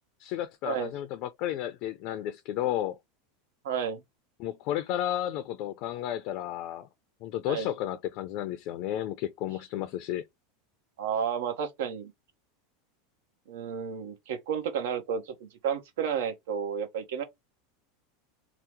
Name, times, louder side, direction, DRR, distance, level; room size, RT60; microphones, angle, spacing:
voice 1, 0.2-3.0 4.4-6.9 7.2-10.2, left 12 dB, 55° left, 0.4 m, -32 dB
voice 2, 3.6-4.0 7.5-7.7 11.0-12.1 13.5-17.2, right 7 dB, 80° right, 0.8 m, -32 dB
2.8 x 2.0 x 3.2 m
supercardioid pair, 115°, 0 cm